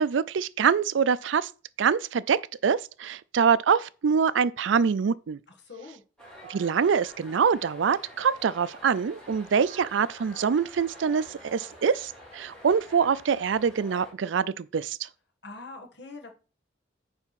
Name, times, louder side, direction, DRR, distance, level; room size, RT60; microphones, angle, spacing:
voice 1, 0.0-1.5 1.8-5.4 6.5-15.1, right 6 dB, 75° right, 0.4 m, -25 dB
voice 2, 5.6-6.0 15.4-16.3, left 3 dB, 60° left, 1.5 m, -43 dB
sound 1, 6.2-14.1, equal, 5° left, 2.9 m, -48 dB
9.0 x 3.5 x 5.8 m
head